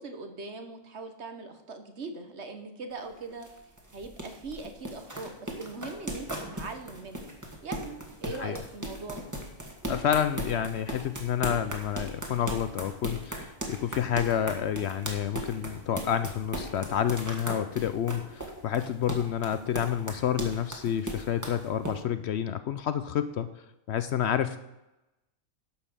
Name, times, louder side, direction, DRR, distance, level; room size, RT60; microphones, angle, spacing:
voice 1, 0.0-3.5 3.9-7.2 7.6-9.2, right 3 dB, 55° right, 7 dB, 1.5 m, -40 dB
sound 1, 2.9-21.9, right 1 dB, 15° right, 1.6 m, -37 dB
voice 2, 9.9-23.5 23.9-24.6, left 9 dB, 65° left, 12 dB, 0.7 m, -29 dB
11.5 x 5.7 x 6.8 m, 0.95 s
omnidirectional pair, 1.4 m